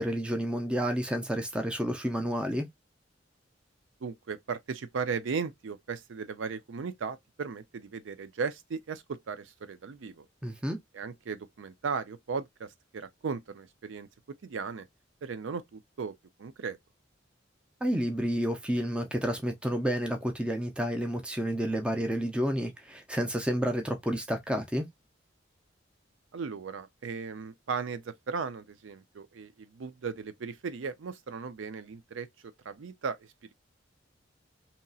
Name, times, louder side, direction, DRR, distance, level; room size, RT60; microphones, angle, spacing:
voice 1, 0.0-2.6 10.4-10.8 17.8-24.9, equal, 5° right, 0.5 m, -30 dB
voice 2, 4.0-10.3 10.9-14.1 14.4-14.9 15.2-16.8 26.3-33.5, right 5 dB, 75° right, 0.5 m, -37 dB
2.8 x 2.6 x 2.3 m
head